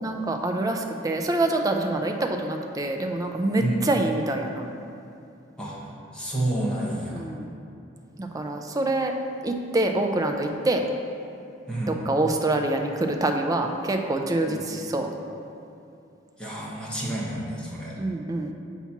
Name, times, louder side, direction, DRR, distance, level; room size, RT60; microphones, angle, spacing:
voice 1, 0.0-4.7 7.1-7.5 8.2-9.1 9.4-10.8 11.9-15.1 18.0-18.5, right 2 dB, 20° right, 3 dB, 0.4 m, -26 dB
voice 2, 6.1-7.3 11.7-11.9 14.5-14.6 16.4-18.0, right 1 dB, 5° left, -7 dB, 1.1 m, -29 dB
7.0 x 2.9 x 5.8 m, 2.6 s
head